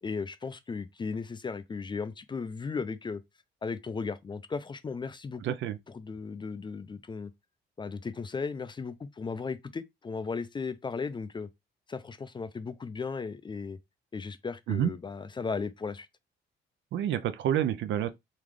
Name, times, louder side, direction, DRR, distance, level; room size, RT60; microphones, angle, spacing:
voice 1, 0.0-3.2 3.6-5.4 5.9-7.3 7.8-11.5 11.9-13.8 14.1-16.1, left 5 dB, 25° left, 0.4 m, -36 dB
voice 2, 5.4-5.8 14.7-14.9 16.9-18.1, right 10 dB, 70° right, 0.5 m, -28 dB
3.8 x 2.4 x 3.2 m
cardioid pair, 90°, 20 cm